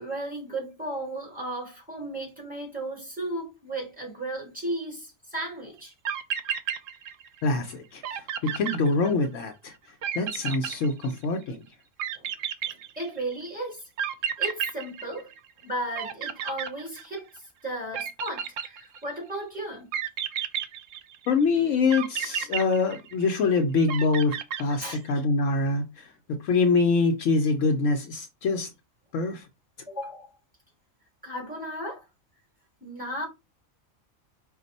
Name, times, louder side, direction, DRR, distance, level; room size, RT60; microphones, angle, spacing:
voice 1, 0.0-5.9 12.1-12.3 12.6-13.8 14.4-15.3 15.6-19.9 24.8-25.0 29.9-30.3 31.2-32.0 32.8-33.2, right 1 dB, 5° right, 2.9 m, -35 dB
sound 1, 5.8-5.9 6.1-7.4 7.7-7.8 8.0-9.5 10.0-11.4 12.0-13.3 14.0-15.7 16.0-17.4 17.9-19.2 19.9-21.3 21.9-23.4 23.9-25.1, right 8 dB, 75° right, 1.0 m, -32 dB
voice 2, 7.4-9.8 10.1-11.6 21.3-28.7 29.1-29.5, left 3 dB, 70° left, 1.0 m, -25 dB
5.1 x 2.6 x 4.0 m
omnidirectional pair, 1.4 m